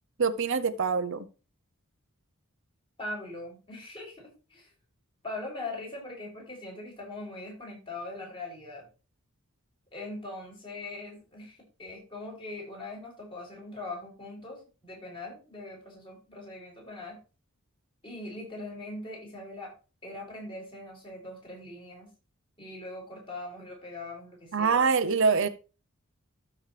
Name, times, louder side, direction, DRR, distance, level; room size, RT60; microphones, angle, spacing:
voice 1, 0.2-1.3 24.5-25.5, right 5 dB, 60° right, 0.7 m, -24 dB
voice 2, 3.0-4.7 5.2-8.8 9.9-17.2 18.0-19.7 20.0-22.1 22.6-24.8, left 2 dB, 25° left, 6.2 m, -41 dB
13.5 x 6.1 x 3.3 m
head